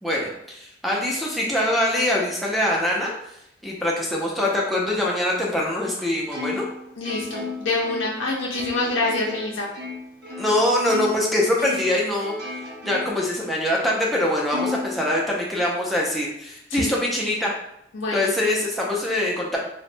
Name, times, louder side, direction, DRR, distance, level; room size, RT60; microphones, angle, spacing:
voice 1, 0.0-3.1 3.6-6.7 10.4-12.3 12.8-17.5 18.1-19.6, left 1 dB, ahead, -4 dB, 0.4 m, -23 dB
Plucked string instrument, 6.3-11.3 11.6-13.3 13.7-13.8 14.5-15.7, left 3 dB, 55° right, 0.6 m, -34 dB
voice 2, 7.0-9.7 16.7-16.9 17.9-18.3, left 2 dB, 80° left, -2 dB, 0.5 m, -26 dB
3.0 x 2.1 x 2.5 m, 0.77 s
head